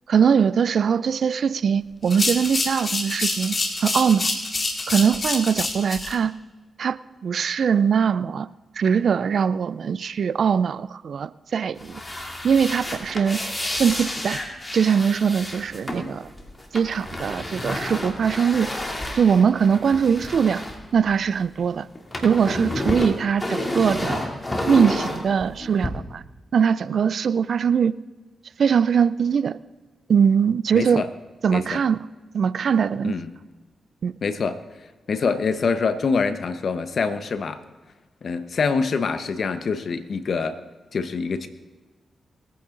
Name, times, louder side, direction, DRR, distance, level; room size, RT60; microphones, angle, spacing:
voice 1, 0.1-3.6 3.8-4.3 4.9-6.3 6.8-8.5 8.8-12.0 12.4-13.4 13.8-14.4 14.7-16.3 16.7-18.7 19.2-20.6 20.9-21.9 22.2-24.2 24.7-26.2 26.5-27.9 28.6-29.6 30.1-31.0 31.4-32.0 32.3-33.1 34.0-34.1, right 7 dB, 65° right, 0.4 m, -21 dB
sound 1, 2.0-6.1, left 2 dB, 40° left, 2.3 m, -27 dB
sound 2, 11.8-21.6 21.8-25.9, left 1 dB, 25° left, 2.9 m, -30 dB
voice 2, 30.7-31.1 31.5-31.8 33.0-33.3 34.2-34.6 35.1-37.6 38.2-40.6 40.9-41.5, left 5 dB, 65° left, 1.1 m, -25 dB
21.5 x 9.3 x 3.9 m
supercardioid pair, 40°, 0 cm